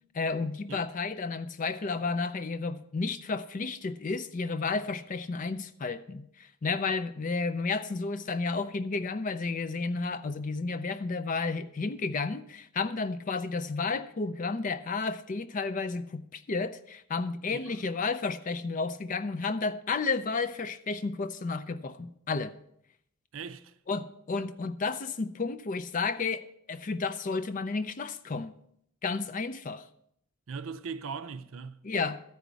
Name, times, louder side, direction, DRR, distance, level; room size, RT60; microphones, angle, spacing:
voice 1, 0.1-22.5 23.9-28.5 29.0-29.9 31.8-32.2, left 4 dB, 35° left, 0.4 m, -32 dB
voice 2, 23.3-23.7 30.5-31.9, right 5 dB, 65° right, 0.5 m, -39 dB
13.0 x 5.1 x 8.1 m
head